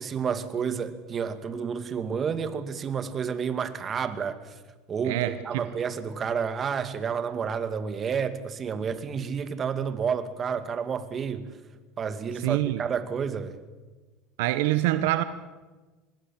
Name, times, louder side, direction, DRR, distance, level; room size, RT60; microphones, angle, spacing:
voice 1, 0.0-4.5 4.9-11.5 12.0-13.6, right 6 dB, 35° right, 2.4 m, -30 dB
voice 2, 5.0-5.7 12.4-12.8 14.4-15.2, right 15 dB, 80° right, 1.0 m, -25 dB
25.5 x 20.5 x 7.6 m
supercardioid pair, 95°, 0 cm